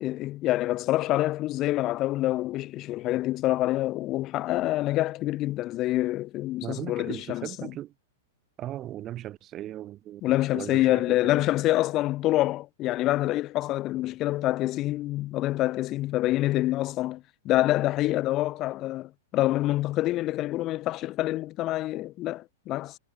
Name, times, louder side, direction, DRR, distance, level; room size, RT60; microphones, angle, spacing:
voice 1, 0.0-7.7 10.2-23.0, left 16 dB, 35° left, 0.4 m, -26 dB
voice 2, 6.6-7.9 8.6-10.2 10.5-11.4, right 13 dB, 30° right, 0.6 m, -38 dB
hypercardioid pair, 105°, 0 cm